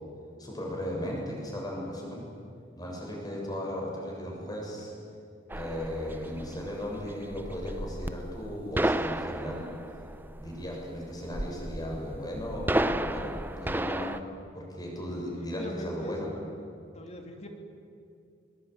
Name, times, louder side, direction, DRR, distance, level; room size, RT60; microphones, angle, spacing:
voice 1, 0.4-2.2 2.7-4.9 5.5-9.7 10.4-14.1 14.5-16.3, equal, 25° left, -2 dB, 7.5 m, -36 dB
sound 1, 5.5-14.2, right 1 dB, 10° right, 0.7 m, -33 dB
voice 2, 15.3-16.2 16.9-17.5, equal, 40° left, 4 dB, 2.8 m, -41 dB
22.5 x 22.0 x 9.6 m, 2.4 s
head